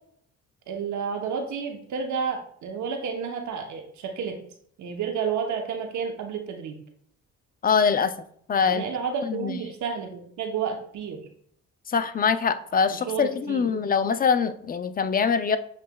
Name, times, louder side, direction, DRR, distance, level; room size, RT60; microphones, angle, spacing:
voice 1, 0.7-4.4 4.8-6.8 8.6-11.2 12.9-13.7, right 6 dB, 70° right, 4 dB, 0.9 m, -31 dB
voice 2, 7.6-8.1 8.5-8.8 9.3-9.6 11.9-15.6, left 6 dB, 30° left, 11 dB, 0.4 m, -23 dB
7.3 x 3.2 x 2.3 m, 0.63 s
cardioid pair, 90°, 30 cm